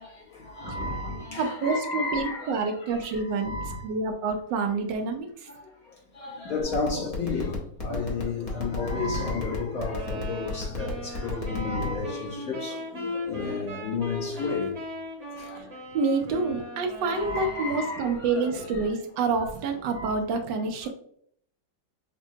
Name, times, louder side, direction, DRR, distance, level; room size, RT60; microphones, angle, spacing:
voice 1, 0.0-3.9 5.6-5.7 6.1-14.8 15.4-15.6 17.0-19.0 19.9-20.2, left 3 dB, 55° left, 1.5 m, -32 dB
voice 2, 1.4-3.5 3.8-5.5 15.5-15.7 15.9-20.9, right 4 dB, 85° right, 1.4 m, -28 dB
sound 1, 6.7-12.0, left 2 dB, 30° left, 0.6 m, -36 dB
sound 2, 10.0-18.0, left 2 dB, 25° right, 0.9 m, -38 dB
6.0 x 2.2 x 2.7 m
omnidirectional pair, 1.9 m